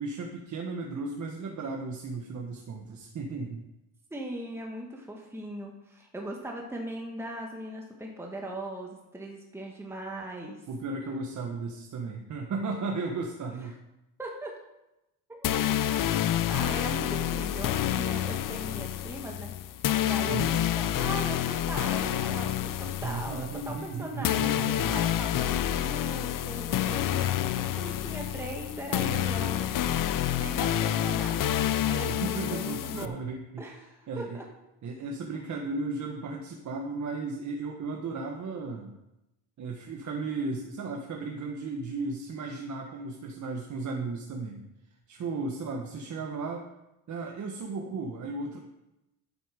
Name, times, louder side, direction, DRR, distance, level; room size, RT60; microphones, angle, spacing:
voice 1, 0.0-3.6 10.7-13.7 20.2-20.6 23.0-24.9 32.1-33.6 34.1-34.4 34.8-38.9 39.6-44.7 45.1-46.6 47.1-48.6, right 3 dB, 50° right, 1 dB, 1.5 m, -35 dB
voice 2, 4.1-10.7 13.5-13.7 14.2-14.6 15.3-29.7 30.4-31.6 31.9-33.2 33.6-34.4, right 1 dB, 5° right, 0 dB, 1.6 m, -39 dB
sound 1, 15.4-33.1, left 11 dB, 55° left, 0.7 m, -28 dB
12.0 x 8.0 x 5.1 m, 0.93 s
cardioid pair, 120°, 38 cm